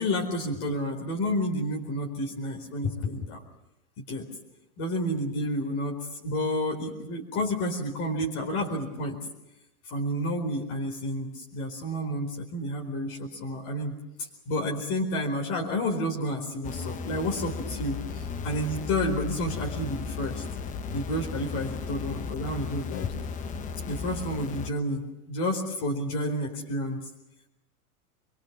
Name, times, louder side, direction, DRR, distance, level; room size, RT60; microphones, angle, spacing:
voice 1, 0.0-3.4 4.0-4.3 4.8-9.2 9.9-20.4 20.9-23.1 23.8-27.0, left 1 dB, 45° left, 1 dB, 4.5 m, -30 dB
sound 1, 16.6-24.7, left 5 dB, 15° left, 0.8 m, -35 dB
24.5 x 22.5 x 7.4 m, 0.93 s
supercardioid pair, 145°, 46 cm